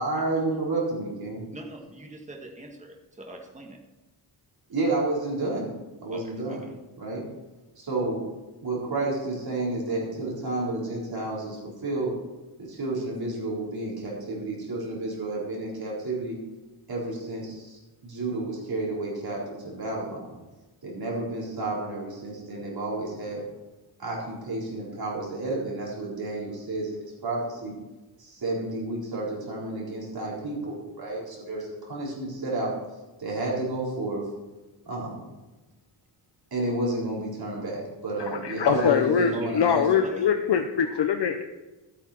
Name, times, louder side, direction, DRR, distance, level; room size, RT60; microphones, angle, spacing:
voice 1, 0.0-1.4 4.7-5.7 6.0-6.6 7.0-7.3 7.8-8.2 8.6-11.6 11.8-12.1 12.6-16.4 16.9-20.3 20.8-23.4 24.0-27.8 28.2-32.7 33.2-34.2 34.9-35.2 36.5-39.8, right 2 dB, 50° right, -4 dB, 4.3 m, -31 dB
voice 2, 1.5-3.8 6.1-6.7 39.3-40.3, right 2 dB, 15° right, 1 dB, 1.6 m, -42 dB
voice 3, 38.2-41.4, left 7 dB, 60° left, 6 dB, 0.8 m, -23 dB
13.0 x 8.8 x 4.4 m, 1.1 s
wide cardioid pair, 155°, 48 cm